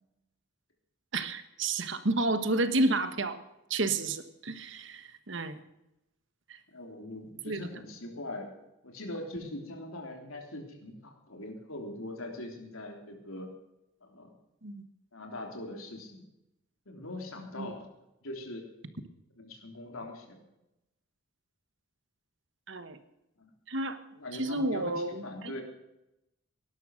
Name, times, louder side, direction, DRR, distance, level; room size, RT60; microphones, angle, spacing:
voice 1, 1.1-3.4 3.7-5.6 6.5-6.6 7.4-7.6 14.6-14.8 17.6-17.7 22.7-23.0 23.7-24.0 24.3-25.5, right 2 dB, 60° right, 10 dB, 1.3 m, -31 dB
voice 2, 6.7-8.5 8.8-13.5 14.0-14.3 15.1-16.2 16.9-17.9 18.2-18.7 19.4-20.4 23.4-23.5 24.2-25.6, left 1 dB, 80° left, 2 dB, 3.5 m, -42 dB
18.5 x 11.5 x 6.5 m, 0.90 s
head